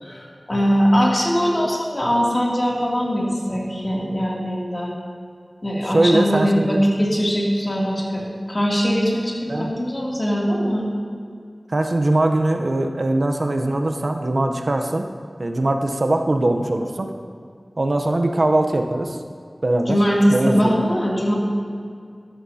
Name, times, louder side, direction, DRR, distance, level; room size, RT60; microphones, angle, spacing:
voice 1, 0.0-4.9 5.6-10.9 19.9-21.3, equal, 35° left, -4 dB, 2.7 m, -21 dB
voice 2, 5.9-6.8 9.5-9.7 11.7-15.1 15.4-17.1 17.8-19.2 19.6-20.0 20.3-20.7, right 2 dB, 65° right, 4 dB, 0.8 m, -21 dB
13.5 x 12.5 x 2.8 m, 2.2 s
wide cardioid pair, 60°, 0 cm